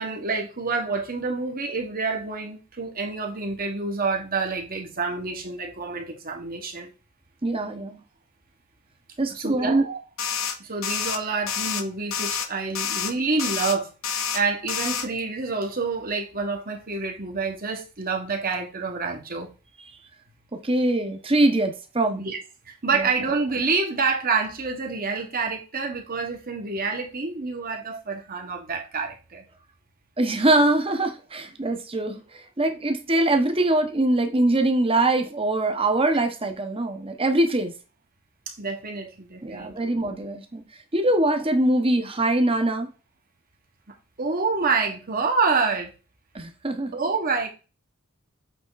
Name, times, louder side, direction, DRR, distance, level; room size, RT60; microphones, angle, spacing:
voice 1, 0.0-6.9 9.3-10.0 10.6-19.5 22.2-22.4 22.6-29.4 38.5-39.9 44.2-45.9 46.9-47.5, right 4 dB, 45° right, 1.6 m, -27 dB
voice 2, 7.4-8.0 9.2-9.8 20.6-22.2 22.9-23.1 30.2-37.7 39.4-40.6 40.9-42.9 46.3-46.9, right 2 dB, 25° right, 1.1 m, -23 dB
sound 1, 10.2-10.6 10.8-11.2 11.5-11.8 12.1-12.5 12.8-13.1 13.4-13.8 14.0-14.4 14.7-15.1, left 7 dB, 70° left, 1.0 m, -28 dB
7.9 x 3.6 x 4.1 m
head